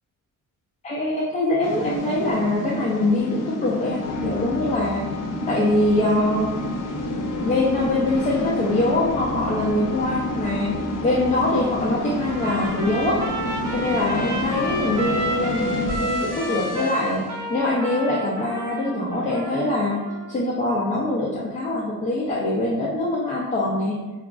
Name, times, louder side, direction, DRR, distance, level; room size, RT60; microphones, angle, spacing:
voice 1, 0.8-5.1 5.5-6.5 7.4-13.2 13.7-20.0 20.3-24.0, left 1 dB, 20° left, -6 dB, 0.4 m, -23 dB
sound 1, 1.6-17.3, left 2 dB, 75° left, 0.6 m, -29 dB
Trumpet, 12.3-20.4, right 1 dB, 60° right, 0.7 m, -31 dB
4.8 x 2.3 x 2.3 m, 1.2 s
cardioid pair, 160°, 33 cm